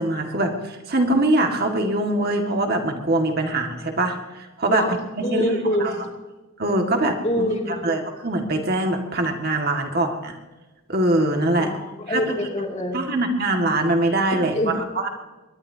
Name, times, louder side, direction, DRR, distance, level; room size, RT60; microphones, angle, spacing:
voice 1, 0.0-5.9 6.6-7.2 7.8-10.4 10.9-11.7 12.1-12.2 12.9-15.1, right 2 dB, 45° right, 3 dB, 2.0 m, -23 dB
voice 2, 5.2-6.1 7.2-7.8 11.6-13.0 14.3-14.8, left 1 dB, 30° left, 1 dB, 2.7 m, -25 dB
23.0 x 21.5 x 2.9 m, 1.1 s
head